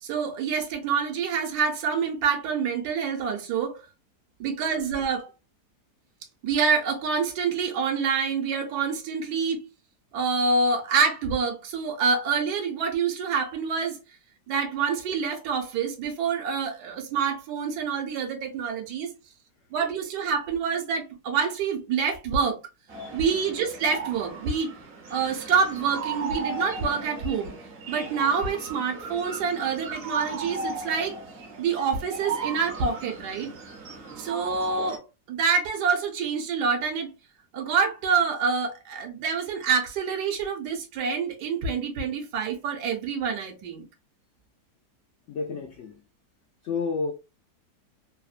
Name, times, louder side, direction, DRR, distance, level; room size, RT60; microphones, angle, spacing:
voice 1, 0.0-3.8 4.4-5.3 6.4-9.6 10.1-14.0 14.5-19.1 19.7-22.6 23.1-24.7 25.1-27.5 27.9-31.2 31.6-33.5 34.2-37.1 37.5-43.8, right 5 dB, 75° right, 1.2 m, -27 dB
sound 1, 22.9-35.0, right 4 dB, 55° right, 0.7 m, -37 dB
voice 2, 45.3-46.0 46.6-47.1, left 4 dB, 80° left, 0.6 m, -31 dB
3.3 x 2.1 x 2.4 m
omnidirectional pair, 1.8 m